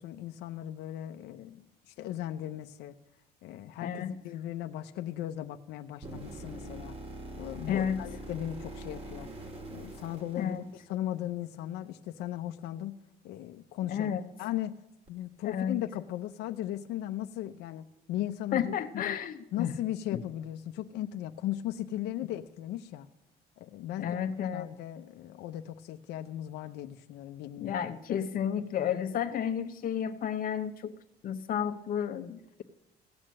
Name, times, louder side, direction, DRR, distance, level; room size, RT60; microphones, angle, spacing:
voice 1, 0.0-2.9 3.4-6.9 7.4-9.3 9.7-13.0 13.2-14.1 14.4-14.8 15.1-19.2 19.5-23.1 23.6-24.2 24.5-27.8, left 12 dB, 80° left, 6 dB, 0.7 m, -37 dB
voice 2, 3.8-4.1 7.7-8.0 10.4-10.6 13.9-14.3 15.4-15.8 18.5-19.7 24.0-24.7 27.6-30.9 31.2-32.6, left 8 dB, 55° left, 6 dB, 1.0 m, -32 dB
sound 1, 6.0-11.1 15.1-15.2, right 1 dB, 35° right, 2.6 m, -43 dB
16.5 x 8.7 x 7.6 m, 0.89 s
cardioid pair, 110°, 17 cm